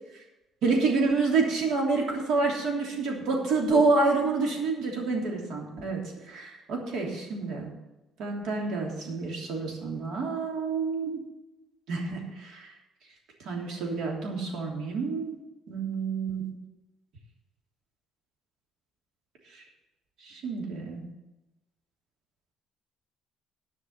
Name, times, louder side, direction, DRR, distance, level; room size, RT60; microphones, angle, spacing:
voice 1, 0.6-6.0 6.3-7.7 8.2-11.2 11.9-12.7 13.4-15.4 15.7-16.4 20.2-21.0, right 3 dB, 70° right, 0 dB, 3.0 m, -28 dB
11.5 x 5.8 x 8.0 m, 1.0 s
cardioid pair, 140°, 0 cm